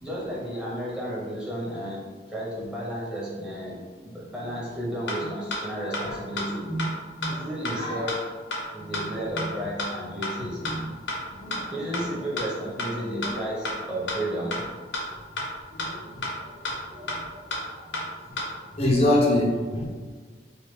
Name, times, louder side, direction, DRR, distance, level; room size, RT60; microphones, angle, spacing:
voice 1, 0.0-6.7 7.3-8.3 8.7-10.6 11.7-14.6, equal, 5° right, -6 dB, 0.8 m, -33 dB
sound 1, 4.7-4.8 5.1-5.2 5.5-5.6 5.9-6.0 6.4-6.5 6.8-6.9 7.2-7.3 7.6-7.7 8.1-8.2 8.5-8.6 8.9-9.0 9.4-9.5 9.8-9.9 10.2-10.3 10.6-10.7 11.1-11.2 11.5-11.6 11.9-12.0 12.4-12.5 12.8-12.9 13.2-13.3 13.6-13.7 14.1-14.2 14.5-14.6 14.9-15.0 15.4-15.5 15.8-15.9 16.2-16.3 16.6-16.7 17.1-17.2 17.5-17.6 17.9-18.0 18.4-18.5, left 2 dB, 90° left, 0.9 m, -29 dB
voice 2, 7.2-8.0 10.6-10.7 11.4-11.7 15.9-16.3 16.9-17.1 18.8-19.9, left 1 dB, 35° left, -4 dB, 0.5 m, -25 dB
4.3 x 2.4 x 3.3 m, 1.5 s
head